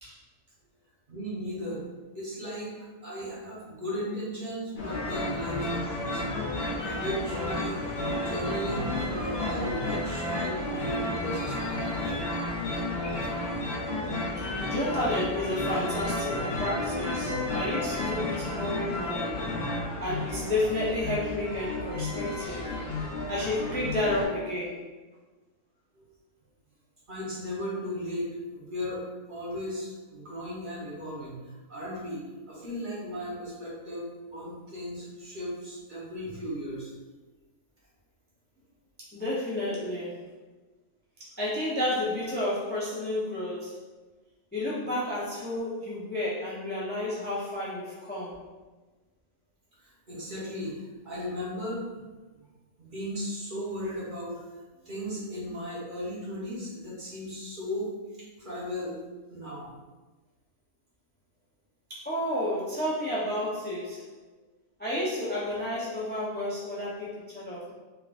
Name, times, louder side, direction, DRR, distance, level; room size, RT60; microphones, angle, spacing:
voice 1, 1.1-1.8 2.1-6.2 6.7-12.1 25.9-26.1 27.1-36.9 49.8-51.9 52.3-52.5 52.8-54.5 54.8-57.9 58.2-59.0 59.3-59.7, equal, 40° right, -7 dB, 1.1 m, -36 dB
sound 1, 4.8-24.2, left 1 dB, 50° left, 0.9 m, -32 dB
voice 2, 14.6-19.4 20.0-22.7 23.3-24.8 39.1-40.2 41.2-43.8 44.5-48.3 61.9-64.1 64.8-67.7, left 1 dB, 15° left, -7 dB, 0.4 m, -31 dB
3.7 x 3.3 x 2.5 m, 1.2 s
omnidirectional pair, 1.5 m